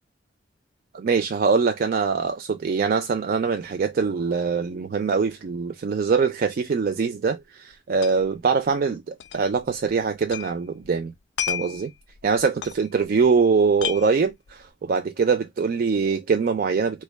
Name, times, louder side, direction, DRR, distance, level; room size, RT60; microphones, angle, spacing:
voice 1, 0.9-11.1 11.5-11.9 12.2-17.0, right 5 dB, 50° right, 0.4 m, -23 dB
sound 1, 7.4-7.5 7.7-8.4 8.6-8.7 9.2-10.5 10.8-13.4 13.6-14.7, left 9 dB, 65° left, 0.4 m, -33 dB
3.3 x 2.2 x 3.2 m
head